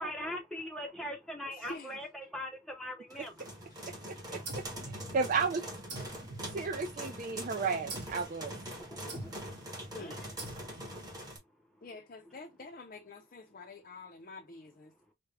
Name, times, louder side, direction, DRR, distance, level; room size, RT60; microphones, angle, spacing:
voice 1, 0.0-3.5 8.8-9.7 10.0-10.2, left 1 dB, ahead, 0.6 m, -41 dB
voice 2, 1.5-2.0 3.7-4.3 9.9-10.2 11.8-14.9, left 3 dB, 45° left, 0.5 m, -48 dB
sound 1, 3.1-11.4, equal, 20° right, 1.2 m, -44 dB
voice 3, 4.3-4.6 5.1-5.6 6.5-8.6, right 5 dB, 40° right, 0.4 m, -32 dB
sound 2, 4.5-5.5 5.9-7.2 7.9-8.3 9.1-9.6 10.4-11.0, right 2 dB, 55° right, 1.4 m, -45 dB
sound 3, 5.0-5.4 5.6-6.1 6.3-6.8 7.0-7.5 7.7-8.2 8.4-8.9 9.1-9.6 9.8-10.3, right 1 dB, 80° right, 1.2 m, -55 dB
4.7 x 2.2 x 3.3 m
head